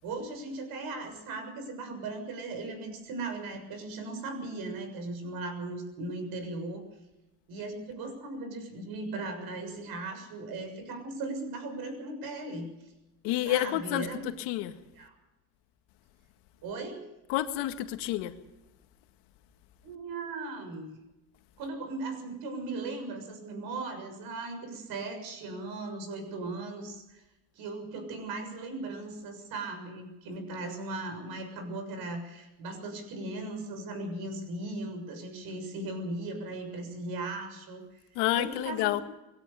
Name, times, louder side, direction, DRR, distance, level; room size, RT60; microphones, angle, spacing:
voice 1, 0.0-6.9 7.5-12.9 13.5-14.2 15.0-15.1 16.6-17.1 19.8-20.9 21.6-27.2 27.5-38.0 38.3-39.0, right 2 dB, 60° right, 6.9 m, -38 dB
voice 2, 13.2-14.8 17.3-18.3 38.2-39.0, left 14 dB, 70° left, 1.9 m, -29 dB
22.5 x 17.5 x 6.9 m
cardioid pair, 130°, 41 cm